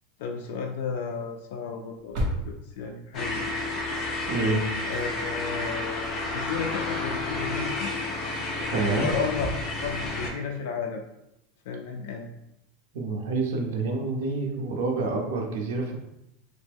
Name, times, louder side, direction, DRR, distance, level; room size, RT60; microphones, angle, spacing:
voice 1, 0.2-2.2 2.4-3.5 4.9-7.9 8.9-9.5 9.8-11.0 11.7-12.3, left 5 dB, 70° left, 2 dB, 0.3 m, -33 dB
sound 1, 1.9-8.7 9.0-9.2 9.5-9.6, equal, 45° right, 0.8 m, -38 dB
sound 2, 3.1-10.3, left 2 dB, 25° left, 0.7 m, -30 dB
voice 2, 4.3-4.7 8.7-9.1 12.9-16.0, right 3 dB, 80° right, 1 dB, 0.6 m, -27 dB
3.0 x 2.1 x 3.4 m, 0.85 s
supercardioid pair, 160°, 0 cm